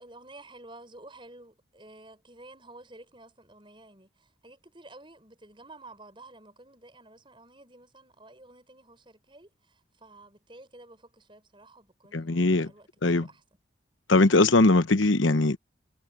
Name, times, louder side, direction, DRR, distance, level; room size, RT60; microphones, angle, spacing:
voice 1, 0.0-13.4, right 2 dB, 25° right, 6.5 m, -51 dB
voice 2, 12.1-12.7 13.0-13.3 14.1-15.6, left 2 dB, 80° left, 1.0 m, -21 dB
head